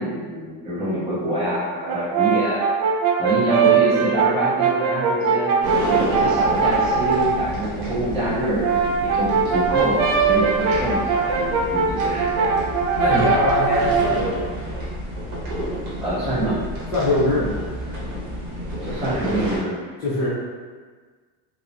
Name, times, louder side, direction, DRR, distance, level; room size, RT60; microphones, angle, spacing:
voice 1, 0.0-2.8 3.2-5.5 5.8-11.4 11.7-12.5 16.0-16.6 18.8-19.7, right 1 dB, 15° right, -10 dB, 0.4 m, -25 dB
Brass instrument, 1.9-7.4 8.4-14.2, right 5 dB, 85° right, 0.5 m, -21 dB
sound 1, 5.6-19.6, equal, 45° right, 0.8 m, -30 dB
voice 2, 13.0-14.5 16.9-17.5 20.0-20.3, left 1 dB, 35° left, -11 dB, 0.6 m, -21 dB
2.7 x 2.0 x 2.4 m, 1.5 s
cardioid pair, 160°, 47 cm